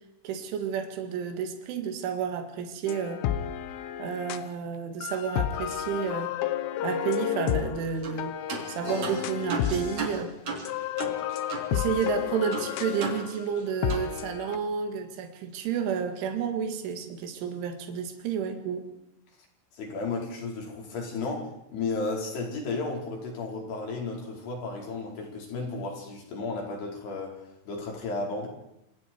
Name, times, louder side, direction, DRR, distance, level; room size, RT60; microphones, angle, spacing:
voice 1, 0.2-3.3 4.0-6.4 6.8-8.3 8.7-10.4 11.7-18.9, right 7 dB, 75° right, 5 dB, 4.5 m, -31 dB
sound 1, 2.9-4.5 5.0-10.2 10.5-14.6, left 11 dB, 85° left, 3.6 m, -31 dB
sound 2, 8.0-8.2 8.5-11.7 12.0-12.1 12.5-13.6 13.9-14.1, right 4 dB, 40° right, 4.1 m, -36 dB
voice 2, 19.7-27.4 27.7-28.5, left 3 dB, 55° left, 0 dB, 6.8 m, -33 dB
27.0 x 27.0 x 4.7 m, 0.83 s
omnidirectional pair, 5.6 m